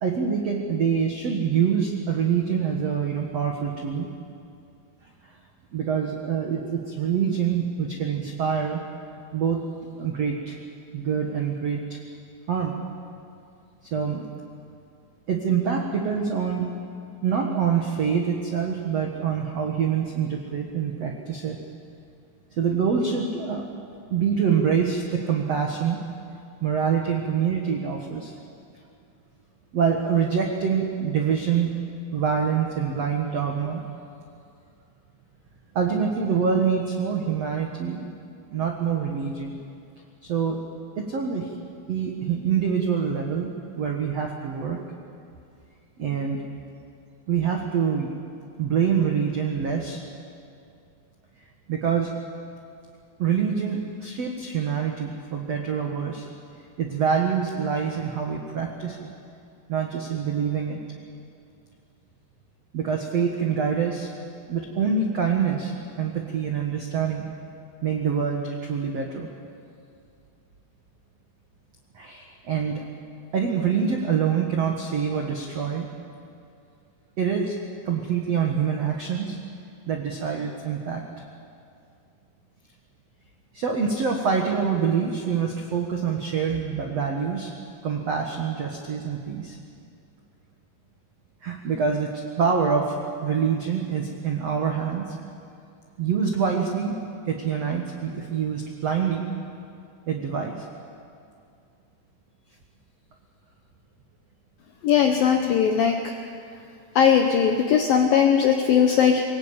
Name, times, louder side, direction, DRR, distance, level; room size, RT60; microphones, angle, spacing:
voice 1, 0.0-4.1 5.2-5.3 5.7-8.8 9.3-9.6 10.0-10.6 10.9-12.0 12.5-12.7 13.8-14.2 15.3-16.7 17.2-21.6 22.6-23.6 24.1-26.0 26.6-28.3 29.7-31.7 32.1-33.8 35.7-38.1 38.5-39.6 40.2-40.6 41.0-41.5 41.9-43.5 43.7-44.8 46.0-46.4 47.3-48.1 48.6-50.0 51.7-52.1 53.2-56.3 56.8-59.1 59.7-60.8 62.7-64.1 64.5-67.3 67.8-69.3 71.9-72.8 73.3-75.9 77.2-77.5 77.8-79.4 79.9-81.0 83.5-87.5 87.8-89.6 91.4-92.9 93.2-95.1 96.0-96.9 97.2-99.2 100.1-100.6 107.4-107.5, right 7 dB, 85° right, 2 dB, 1.4 m, -25 dB
voice 2, 104.8-106.1 107.0-109.2, left 7 dB, 80° left, 4 dB, 2.0 m, -19 dB
24.0 x 20.0 x 8.8 m, 2.5 s
omnidirectional pair, 5.5 m